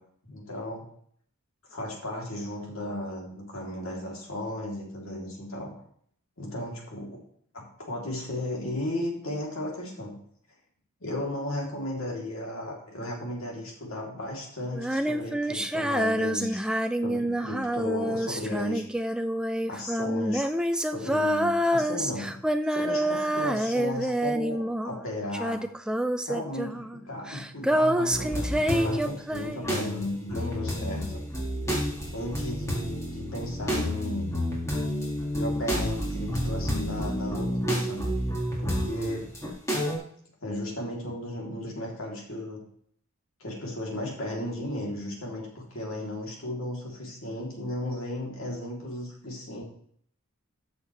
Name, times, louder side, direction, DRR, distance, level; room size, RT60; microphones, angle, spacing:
voice 1, 0.2-0.9 1.7-5.7 6.4-7.2 7.5-10.2 11.0-16.6 17.0-18.8 19.7-22.4 22.7-25.6 26.2-31.2 32.1-34.3 35.3-38.1 38.6-39.3 40.4-42.6 43.4-49.6, left 1 dB, 65° left, -2 dB, 3.1 m, -35 dB
Female singing, 14.7-25.1 25.3-29.8, equal, 5° right, 0.3 m, -27 dB
sound 1, 28.1-29.0 29.3-40.0, equal, 15° left, 2.1 m, -30 dB
13.0 x 6.5 x 3.3 m, 0.62 s
head